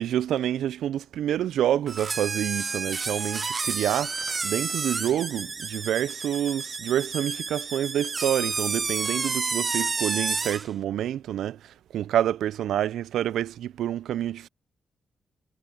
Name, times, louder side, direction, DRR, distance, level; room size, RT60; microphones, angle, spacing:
voice 1, 0.0-14.5, right 11 dB, 80° right, 0.4 m, -28 dB
sound 1, 1.9-10.7, right 4 dB, 40° right, 0.9 m, -30 dB
supercardioid pair, 55°, 0 cm